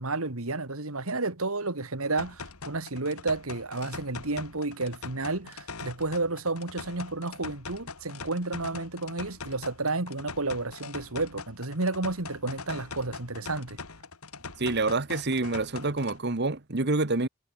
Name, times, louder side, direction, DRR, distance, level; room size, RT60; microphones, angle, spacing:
voice 1, 0.0-13.8, right 3 dB, 80° right, 2.5 m, -31 dB
sound 1, 2.2-16.2, left 4 dB, 90° left, 2.5 m, -42 dB
voice 2, 14.6-17.3, right 3 dB, 50° right, 1.4 m, -27 dB
head